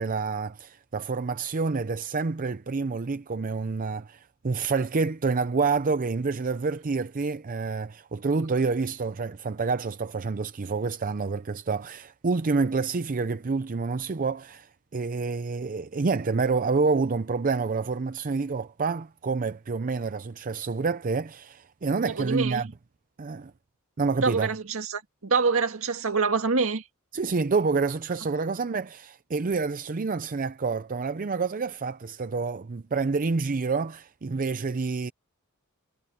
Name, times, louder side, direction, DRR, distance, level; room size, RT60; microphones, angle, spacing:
voice 1, 0.0-22.7 23.2-23.5 24.0-24.5 27.1-35.1, right 4 dB, 40° right, 0.5 m, -28 dB
voice 2, 22.0-22.6 24.2-26.8, right 4 dB, 70° right, 2.0 m, -26 dB
head